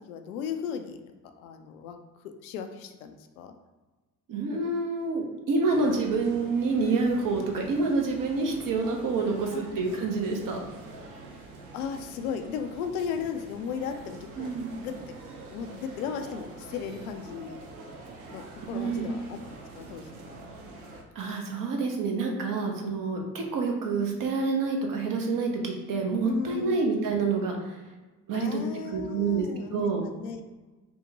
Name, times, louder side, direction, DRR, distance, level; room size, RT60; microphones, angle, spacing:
voice 1, 0.1-1.0 1.4-2.0 2.4-3.5 9.5-9.8 11.7-14.5 14.8-14.9 15.5-17.6 18.3-19.4 19.8-20.1 26.2-26.8 28.3-30.4, left 7 dB, 75° left, 6 dB, 0.5 m, -35 dB
voice 2, 4.3-10.6 14.4-14.7 18.7-19.1 21.1-27.8 28.3-28.6 28.9-29.5 29.7-30.0, right 4 dB, 50° right, 1 dB, 0.9 m, -27 dB
sound 1, 5.7-21.0, right 3 dB, 80° right, 0.6 m, -46 dB
5.3 x 2.1 x 2.8 m, 1.2 s
figure-of-eight pair, 45°, 43 cm